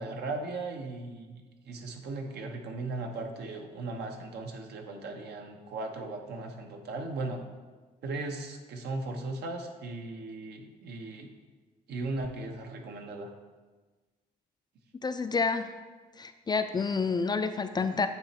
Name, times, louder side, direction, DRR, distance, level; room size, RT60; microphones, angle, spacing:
voice 1, 0.0-7.4 8.0-11.3 11.9-13.3, right 2 dB, 75° right, 3 dB, 0.9 m, -37 dB
voice 2, 15.0-15.7 16.2-18.1, left 4 dB, 25° left, 9 dB, 0.3 m, -29 dB
8.8 x 3.0 x 4.2 m, 1.3 s
cardioid pair, 85°, 17 cm